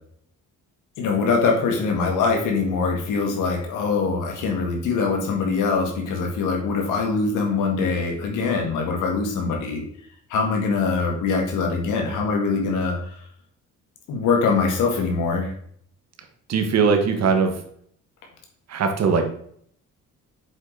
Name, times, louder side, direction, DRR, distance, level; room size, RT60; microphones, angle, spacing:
voice 1, 1.0-9.8 10.3-13.0 14.1-15.5, left 4 dB, 90° left, 2 dB, 1.9 m, -23 dB
voice 2, 16.5-17.5 18.7-19.2, right 5 dB, 60° right, 4 dB, 1.5 m, -20 dB
7.3 x 5.0 x 3.9 m, 0.64 s
cardioid pair, 90°, 30 cm